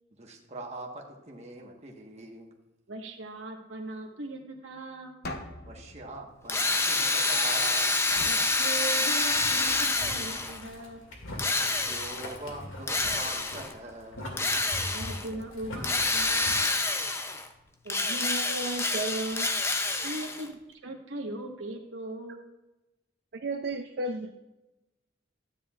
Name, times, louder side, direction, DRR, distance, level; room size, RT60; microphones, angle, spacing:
voice 1, 0.2-2.5 5.6-8.0 11.6-14.3 15.2-15.3, right 2 dB, 35° right, 0 dB, 1.3 m, -43 dB
voice 2, 2.9-5.2 8.2-11.0 14.9-16.6 20.0-22.4, right 2 dB, 75° right, 1 dB, 1.4 m, -39 dB
sound 1, 5.2-7.4 8.1-9.5, left 1 dB, 50° left, 0.9 m, -44 dB
Drill, 6.5-10.6 11.4-12.3 12.9-13.7 14.4-15.3 15.8-17.5 17.9-20.5, left 3 dB, 15° left, 0.5 m, -27 dB
Boiling, 9.2-16.5, left 1 dB, 80° left, 2.1 m, -42 dB
voice 3, 17.9-19.5 23.4-24.3, right 2 dB, 55° right, 5 dB, 0.5 m, -33 dB
12.5 x 9.4 x 2.4 m, 1.0 s
head